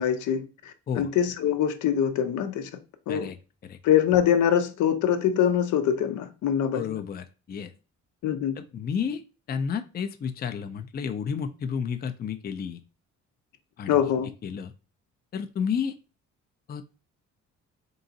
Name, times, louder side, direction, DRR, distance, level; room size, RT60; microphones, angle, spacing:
voice 1, 0.0-2.7 3.1-3.3 3.8-7.0 8.2-8.6 13.9-14.3, left 9 dB, 75° left, 0.6 m, -24 dB
voice 2, 6.7-7.7 8.6-9.2 9.5-12.8 13.8-14.0 14.4-14.7 15.3-16.0 16.7-16.8, left 7 dB, 30° left, 0.4 m, -31 dB
3.8 x 2.5 x 3.9 m
cardioid pair, 90°, 30 cm